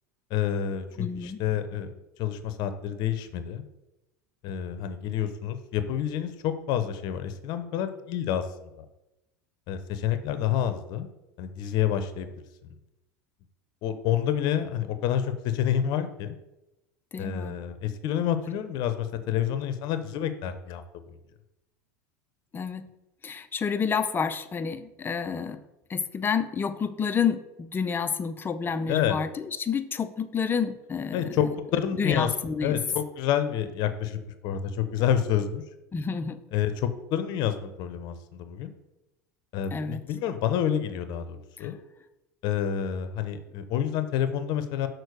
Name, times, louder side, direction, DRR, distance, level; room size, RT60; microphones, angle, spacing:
voice 1, 0.3-3.6 4.4-8.9 9.7-11.1 11.4-12.3 13.8-16.4 17.2-20.8 21.1-21.2 28.9-29.2 31.1-32.3 32.6-35.6 36.5-38.7 39.5-41.8 42.4-44.9, left 9 dB, 55° left, 10 dB, 0.8 m, -28 dB
voice 2, 1.0-1.4 17.1-17.6 22.5-22.8 23.2-25.6 25.9-31.3 32.0-32.8 35.9-36.4 39.7-40.0 41.6-41.7, left 6 dB, 25° left, 11 dB, 0.7 m, -29 dB
6.4 x 4.5 x 6.6 m, 0.95 s
hypercardioid pair, 95°, 9 cm